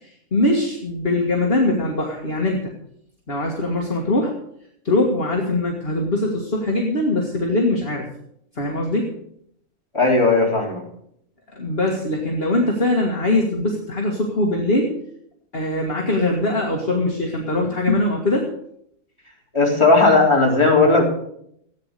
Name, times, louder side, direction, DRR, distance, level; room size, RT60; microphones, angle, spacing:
voice 1, 0.0-2.7 3.3-4.3 4.8-8.0 8.6-9.1 11.6-14.9 15.5-18.5, left 2 dB, 40° left, -1 dB, 2.0 m, -22 dB
voice 2, 9.9-10.8 19.5-21.0, left 3 dB, 20° left, -2 dB, 3.5 m, -16 dB
14.5 x 9.1 x 6.7 m, 0.72 s
omnidirectional pair, 1.5 m